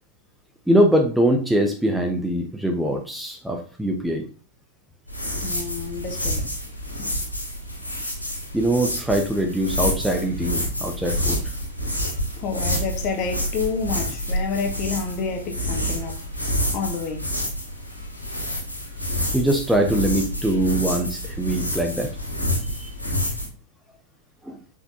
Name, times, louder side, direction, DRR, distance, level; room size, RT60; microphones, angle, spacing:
voice 1, 0.7-4.2 8.5-11.4 19.3-22.1 22.8-22.9 24.4-24.6, right 1 dB, 5° right, 0.9 m, -22 dB
sound 1, 5.1-23.5, equal, 85° left, 2.6 m, -28 dB
voice 2, 5.4-6.5 7.0-7.1 12.3-16.2 16.7-17.3, left 5 dB, 40° left, 1.7 m, -29 dB
6.2 x 5.8 x 2.7 m
figure-of-eight pair, 90°, 0 cm